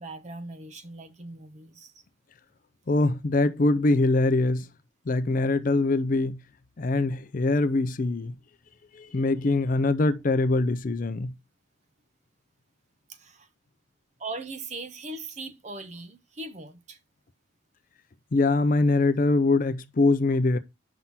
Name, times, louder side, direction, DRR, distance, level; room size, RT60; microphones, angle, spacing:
voice 1, 0.0-1.9 13.1-13.5 14.2-17.0, right 2 dB, 35° right, 0.7 m, -39 dB
voice 2, 2.9-4.7 5.1-6.4 6.8-8.3 8.9-11.3 18.3-20.6, left 2 dB, 45° left, 0.5 m, -23 dB
5.6 x 3.7 x 5.8 m
head